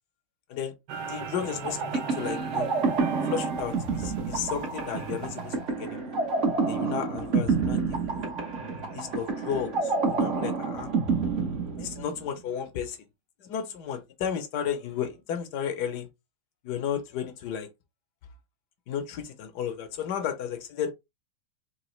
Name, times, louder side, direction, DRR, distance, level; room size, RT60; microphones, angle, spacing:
sound 1, 0.9-5.4, right 6 dB, 75° right, 1.5 m, -38 dB
voice 1, 1.0-2.7 3.3-5.5 5.8-6.1 6.7-7.8 8.1-8.3 8.9-10.9 11.8-13.0 13.4-16.1 16.6-17.7 18.9-20.9, left 8 dB, 65° left, 1.2 m, -33 dB
sound 2, 1.6-12.3, right 4 dB, 50° right, 1.0 m, -29 dB
3.9 x 3.0 x 3.1 m
omnidirectional pair, 2.2 m